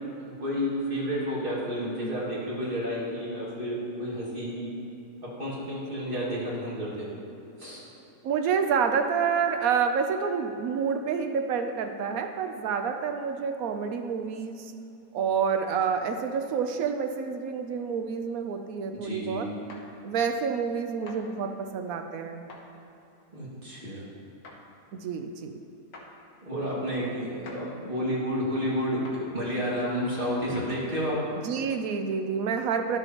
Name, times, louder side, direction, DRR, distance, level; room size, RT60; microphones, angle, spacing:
voice 1, 0.0-4.7 5.2-7.1 7.6-7.9 18.9-19.4 23.3-24.0 26.4-29.1 29.3-31.3, equal, 35° right, -8 dB, 2.3 m, -31 dB
voice 2, 8.2-14.7 15.1-19.5 20.0-22.4 25.0-25.6 31.4-33.0, right 6 dB, 75° right, 6 dB, 1.0 m, -28 dB
sound 1, 19.7-19.9 21.1-21.2 22.5-22.7 24.4-24.6 25.9-26.1 27.5-27.6 29.0-29.2 30.5-30.7, left 3 dB, 85° left, 1.5 m, -45 dB
11.5 x 7.0 x 2.9 m, 2.8 s
omnidirectional pair, 1.6 m